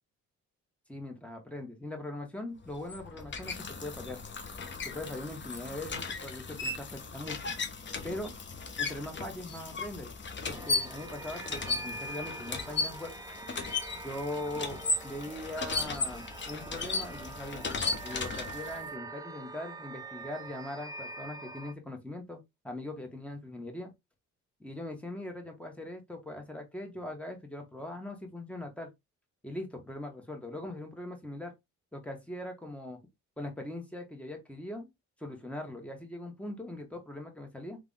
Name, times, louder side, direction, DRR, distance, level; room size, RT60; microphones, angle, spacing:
voice 1, 0.9-3.5 3.8-4.2 4.9-7.6 8.0-8.4 8.8-10.1 10.5-13.1 14.0-17.7 18.0-23.9 24.6-28.9 29.4-31.5 31.9-33.0 33.4-34.9 35.2-37.8, left 1 dB, 5° left, 1.6 m, -41 dB
sound 1, 2.6-18.9, left 3 dB, 40° left, 1.0 m, -36 dB
sound 2, 10.4-21.7, right 2 dB, 10° right, 0.6 m, -44 dB
3.6 x 3.4 x 3.7 m
cardioid pair, 90°, 30 cm